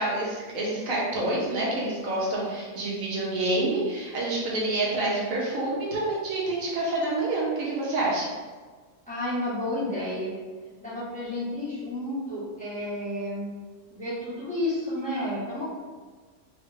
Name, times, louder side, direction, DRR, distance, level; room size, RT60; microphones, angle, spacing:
voice 1, 0.0-8.3, right 2 dB, 90° right, -4 dB, 1.4 m, -27 dB
voice 2, 9.1-10.3 10.8-13.5 13.9-15.8, left 1 dB, 5° left, -11 dB, 1.4 m, -31 dB
3.4 x 3.3 x 3.3 m, 1.4 s
omnidirectional pair, 1.3 m